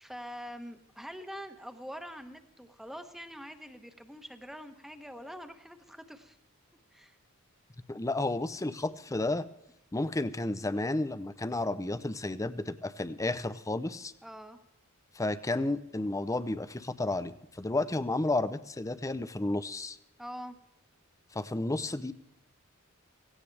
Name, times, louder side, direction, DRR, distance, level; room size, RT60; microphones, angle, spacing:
voice 1, 0.0-6.4 6.9-7.2 14.2-14.6 20.2-20.6, equal, ahead, 7 dB, 1.0 m, -44 dB
voice 2, 7.9-9.5 9.9-14.1 15.2-20.0 21.3-22.1, left 2 dB, 15° left, 14 dB, 0.6 m, -32 dB
17.0 x 16.5 x 3.3 m, 0.83 s
head